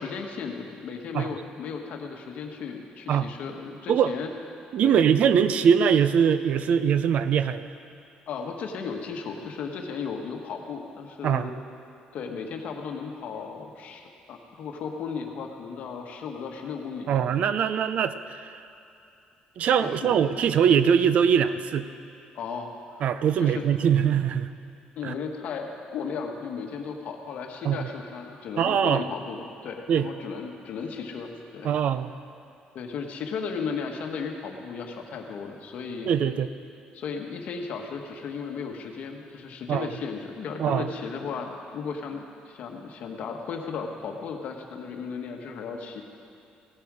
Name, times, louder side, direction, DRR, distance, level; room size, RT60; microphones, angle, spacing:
voice 1, 0.0-4.3 4.8-5.0 8.3-11.5 12.1-17.2 19.8-20.2 22.3-23.1 23.4-23.7 25.0-31.7 32.7-36.1 36.9-46.0, left 5 dB, 60° left, 3 dB, 1.3 m, -35 dB
voice 2, 4.7-7.7 11.2-11.5 17.1-18.5 19.6-21.9 23.0-24.5 25.0-25.1 27.6-27.9 28.6-29.0 29.9-30.1 31.6-32.1 36.1-36.5 39.7-39.9 40.6-40.9, right 8 dB, 50° right, 12 dB, 0.5 m, -22 dB
16.5 x 11.0 x 4.9 m, 2.6 s
cardioid pair, 155°, 3 cm